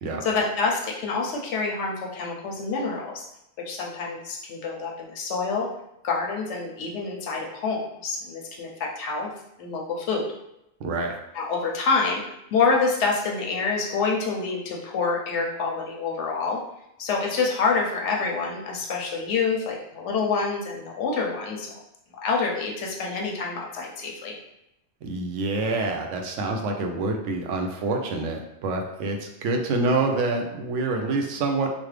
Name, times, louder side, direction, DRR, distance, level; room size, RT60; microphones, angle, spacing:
voice 1, 0.2-3.2 3.7-5.7 6.0-9.3 9.6-10.3 11.3-12.2 12.5-16.6 17.0-21.7 22.2-24.3, left 4 dB, 80° left, -1 dB, 1.0 m, -27 dB
voice 2, 10.8-11.1 25.0-31.7, right 3 dB, 90° right, 2 dB, 0.9 m, -26 dB
3.2 x 2.0 x 3.2 m, 0.84 s
omnidirectional pair, 1.2 m